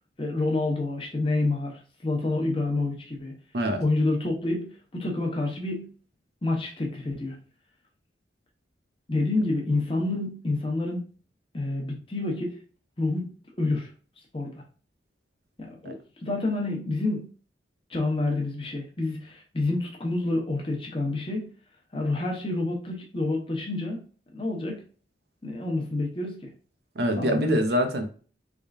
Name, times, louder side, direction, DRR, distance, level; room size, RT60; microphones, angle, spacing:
voice 1, 0.2-3.3 3.8-5.9 6.4-7.4 9.1-11.1 11.5-12.6 13.0-13.3 13.6-13.9 14.3-14.6 15.6-16.0 16.2-17.3 17.9-21.5 21.9-24.0 24.3-24.8 25.4-26.5 27.2-27.6, left 2 dB, 30° left, 1 dB, 0.9 m, -28 dB
voice 2, 27.0-28.1, equal, 70° right, 5 dB, 0.8 m, -25 dB
3.7 x 3.5 x 2.4 m, 0.40 s
head